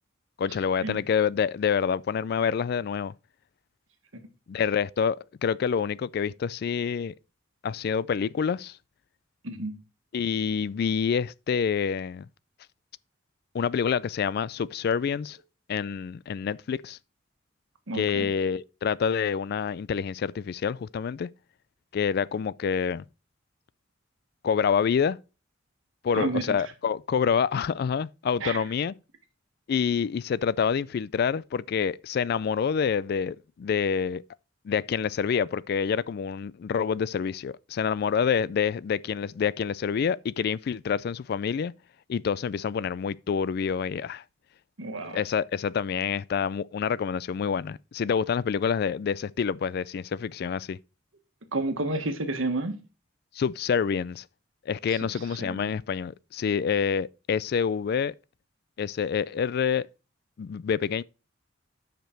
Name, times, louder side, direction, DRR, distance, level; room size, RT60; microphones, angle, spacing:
voice 1, 0.4-3.1 4.5-7.1 7.6-8.8 10.1-12.3 13.5-15.4 15.7-17.0 17.9-21.3 21.9-23.0 24.4-25.2 26.0-28.9 29.7-34.2 34.6-41.7 42.1-44.2 45.1-50.8 53.3-54.2 54.7-58.1 58.8-59.9 60.4-61.0, left 6 dB, 50° left, 0.3 m, -27 dB
voice 2, 17.9-18.3 26.1-26.6 28.4-28.6 44.8-45.2 51.5-52.8 54.9-55.1 55.4-55.7, right 2 dB, 85° right, 1.6 m, -30 dB
9.0 x 5.1 x 4.5 m
head